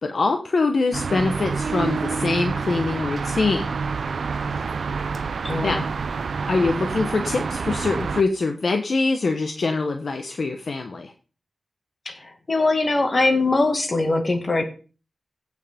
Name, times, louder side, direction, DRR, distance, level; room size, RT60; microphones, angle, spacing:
voice 1, 0.0-3.7 5.6-5.8 6.5-11.1, left 3 dB, 55° left, 5 dB, 1.0 m, -24 dB
sound 1, 0.9-8.2, right 5 dB, 70° right, 0.6 m, -27 dB
voice 2, 5.4-5.8 12.1-14.6, left 2 dB, 35° left, 5 dB, 1.9 m, -22 dB
15.5 x 6.4 x 3.6 m, 0.36 s
wide cardioid pair, 130°, 0 cm